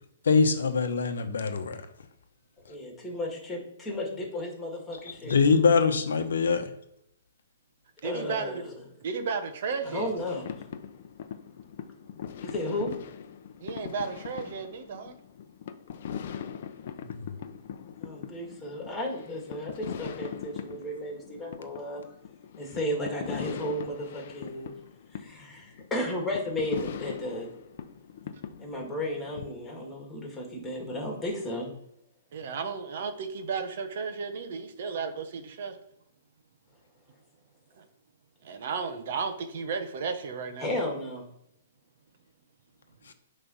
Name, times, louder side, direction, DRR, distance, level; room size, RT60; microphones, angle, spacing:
voice 1, 0.2-1.9 5.1-6.7 17.0-17.4 43.1-43.2, left 5 dB, 85° left, 1.0 m, -24 dB
voice 2, 2.7-5.4 8.0-8.7 9.9-10.5 12.4-12.9 18.0-22.1 22.6-24.7 25.1-27.5 28.6-31.7 40.6-41.2, left 1 dB, 10° left, 1.9 m, -34 dB
voice 3, 8.0-8.6 9.0-10.1 13.6-15.2 32.3-35.8 37.8-37.9 38.4-40.7, right 5 dB, 55° right, 1.0 m, -34 dB
sound 1, 10.2-29.5, left 8 dB, 50° left, 0.6 m, -41 dB
8.1 x 3.3 x 5.6 m
hypercardioid pair, 160°, 0 cm